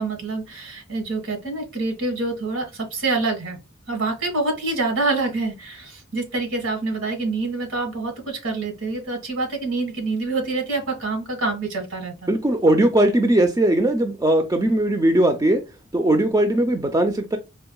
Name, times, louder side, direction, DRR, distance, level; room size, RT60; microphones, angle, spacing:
voice 1, 0.0-3.6 3.9-12.3, right 3 dB, 75° right, 1.5 m, -26 dB
voice 2, 12.3-15.6 15.9-17.4, right 1 dB, 15° right, 0.4 m, -19 dB
4.5 x 2.3 x 2.3 m
head